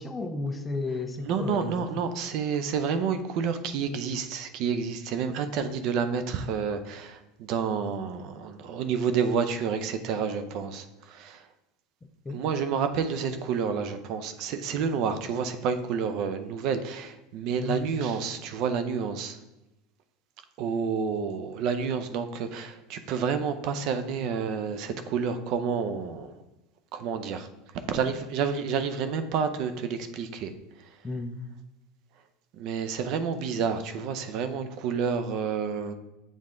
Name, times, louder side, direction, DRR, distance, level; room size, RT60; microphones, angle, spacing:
voice 1, 0.0-2.1 12.2-12.4 17.6-17.8 31.0-31.4, left 3 dB, 15° left, 6 dB, 0.6 m, -33 dB
voice 2, 1.3-10.8 11.1-11.4 12.3-19.4 20.6-26.3 26.9-27.5 27.9-30.5 32.6-35.9, right 6 dB, 55° right, 10 dB, 0.6 m, -29 dB
7.5 x 3.5 x 3.8 m, 0.97 s
supercardioid pair, 125°, 0 cm